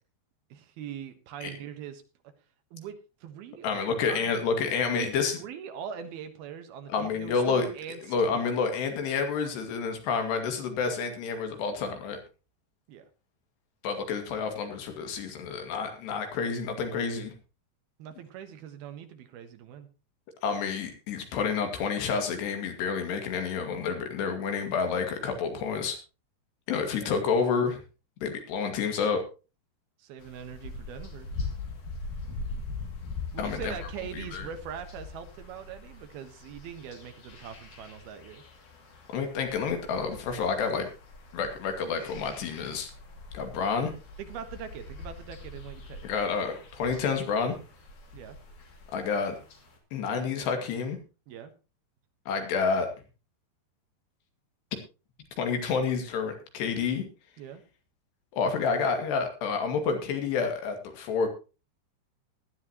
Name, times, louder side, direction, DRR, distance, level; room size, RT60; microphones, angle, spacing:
voice 1, 0.5-2.0 2.7-4.6 4.9-8.0 8.3-8.5 12.9-13.1 18.0-19.9 27.0-27.1 30.0-31.3 33.3-38.4 44.2-46.0 48.1-48.4 51.3-51.5 57.4-57.6, right 8 dB, 70° right, 8 dB, 3.1 m, -42 dB
voice 2, 3.6-5.3 6.9-7.7 8.1-12.2 13.8-17.3 20.4-26.0 26.7-27.8 28.2-29.2 33.4-33.8 34.1-34.5 39.1-40.9 41.3-42.9 43.3-43.9 46.0-47.6 48.9-49.4 49.9-51.0 52.3-52.9 55.4-57.0 58.3-61.3, left 5 dB, 85° left, 5 dB, 4.3 m, -29 dB
sound 1, 30.2-49.8, left 3 dB, 50° left, 3.8 m, -42 dB
17.5 x 12.0 x 3.0 m, 0.32 s
omnidirectional pair, 4.7 m